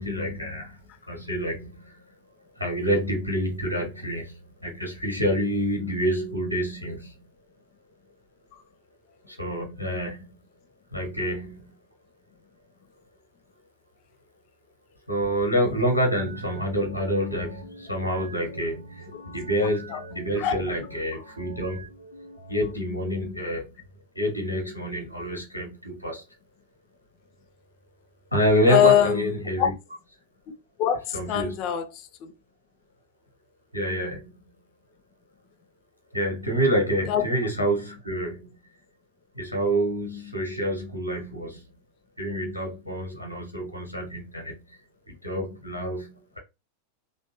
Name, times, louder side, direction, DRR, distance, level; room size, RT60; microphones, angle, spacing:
voice 1, 0.0-2.0 2.6-7.1 9.2-10.4 10.9-11.7 15.1-21.9 22.5-23.8 24.1-26.2 28.3-29.7 31.1-31.6 33.7-34.4 36.1-38.6 39.3-41.7 42.2-44.8 45.1-46.4, equal, 90° right, 1.1 m, -27 dB
sound 1, 15.7-22.7, equal, 80° left, 0.8 m, -45 dB
voice 2, 28.7-29.3 29.6-29.7 30.8-32.3 37.1-37.2, left 10 dB, 40° left, 0.6 m, -23 dB
3.3 x 2.5 x 2.8 m
figure-of-eight pair, 90°, 0 cm